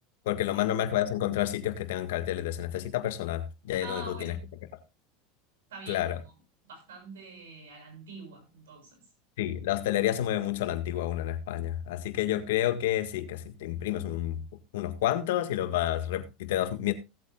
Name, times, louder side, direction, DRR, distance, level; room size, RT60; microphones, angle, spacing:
voice 1, 0.2-4.3 5.9-6.2 9.4-14.4 14.7-16.9, left 12 dB, 80° left, 1.7 m, -29 dB
voice 2, 3.8-4.5 5.7-6.3 6.6-9.0, right 3 dB, 90° right, 6.8 m, -45 dB
17.0 x 8.3 x 2.4 m
supercardioid pair, 120°, 0 cm